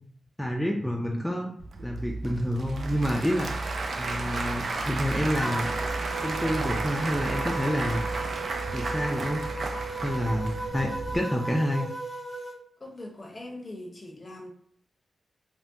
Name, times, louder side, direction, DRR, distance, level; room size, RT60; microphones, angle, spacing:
voice 1, 0.4-1.5 1.8-3.5 4.0-5.7 6.2-8.2 8.7-9.5 10.0-11.9, equal, 5° left, 0 dB, 0.4 m, -28 dB
Applause / Crowd, 1.6-11.2, right 3 dB, 65° right, 0.4 m, -32 dB
sound 1, 5.3-12.5, right 3 dB, 40° right, 1.2 m, -36 dB
voice 2, 12.8-14.5, left 1 dB, 35° left, 1 dB, 0.7 m, -41 dB
3.4 x 2.1 x 2.6 m, 0.62 s
cardioid pair, 80°, 0 cm